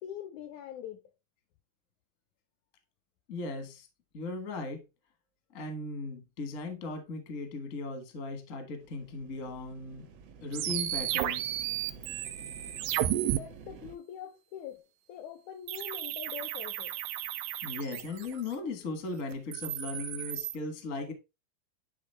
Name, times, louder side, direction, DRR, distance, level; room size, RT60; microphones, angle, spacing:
voice 1, 0.0-1.0 13.3-14.8 15.1-17.0, left 9 dB, 80° left, 1.7 m, -43 dB
voice 2, 3.3-3.9 4.1-4.8 5.5-10.1 10.4-11.5 17.6-21.1, left 3 dB, 55° left, 0.8 m, -37 dB
sound 1, 8.8-14.0, right 6 dB, 65° right, 1.7 m, -50 dB
sound 2, 10.5-13.4 15.7-18.5 19.3-20.6, right 12 dB, 85° right, 2.2 m, -33 dB
9.9 x 3.6 x 3.4 m
omnidirectional pair, 3.9 m